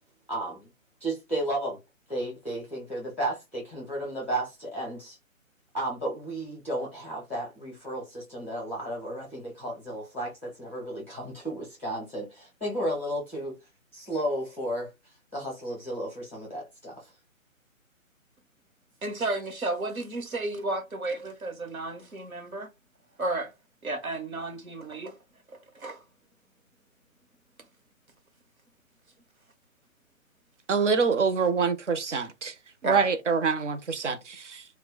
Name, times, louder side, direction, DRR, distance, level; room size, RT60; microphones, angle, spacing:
voice 1, 0.3-0.7 1.0-1.8 2.1-5.2 5.7-13.5 13.9-14.9 15.3-17.1, right 1 dB, 10° left, 0.5 m, -33 dB
voice 2, 19.0-22.7 23.2-23.5 23.8-25.1 25.5-26.0 32.8-33.0, right 2 dB, 85° right, 0.9 m, -32 dB
voice 3, 30.7-32.6 32.8-34.7, right 5 dB, 60° right, 0.6 m, -26 dB
2.2 x 2.0 x 3.8 m
figure-of-eight pair, 140°, 41 cm